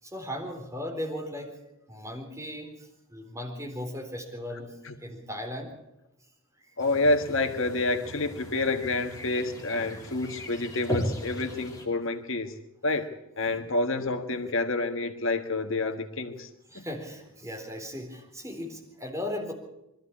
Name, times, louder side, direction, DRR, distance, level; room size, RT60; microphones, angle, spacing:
voice 1, 0.0-1.6 1.9-4.8 5.0-5.7 6.7-6.8 13.5-13.7 16.7-19.5, left 1 dB, 15° right, 0 dB, 4.0 m, -37 dB
voice 2, 6.8-12.5 12.8-13.1 13.4-16.5 16.7-16.8, left 2 dB, 65° left, 6 dB, 1.5 m, -28 dB
sound 1, 6.8-11.9, equal, 15° left, 3.5 m, -37 dB
22.5 x 13.5 x 8.6 m, 0.89 s
head